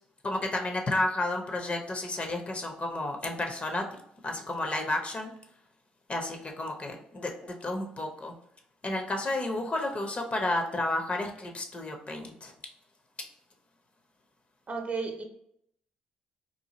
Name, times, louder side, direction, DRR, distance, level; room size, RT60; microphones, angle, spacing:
voice 1, 0.2-3.9 4.2-5.3 6.1-8.3 8.8-12.5, left 2 dB, 35° left, 3 dB, 0.7 m, -31 dB
voice 2, 14.7-15.2, right 4 dB, 35° right, 4 dB, 0.6 m, -33 dB
2.7 x 2.5 x 2.9 m, 0.71 s
hypercardioid pair, 50°, 4 cm